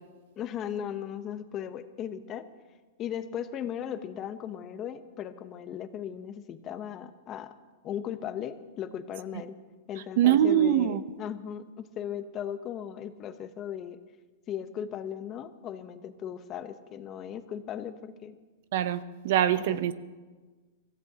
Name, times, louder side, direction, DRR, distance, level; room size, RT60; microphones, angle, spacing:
voice 1, 0.4-2.5 3.0-7.5 7.8-9.5 9.9-14.0 14.5-18.3 19.5-19.8, left 9 dB, 30° left, 10 dB, 0.8 m, -37 dB
voice 2, 10.2-11.0 18.7-19.9, right 11 dB, 60° right, 14 dB, 0.7 m, -23 dB
23.5 x 15.5 x 2.9 m, 1.3 s
supercardioid pair, 150°, 0 cm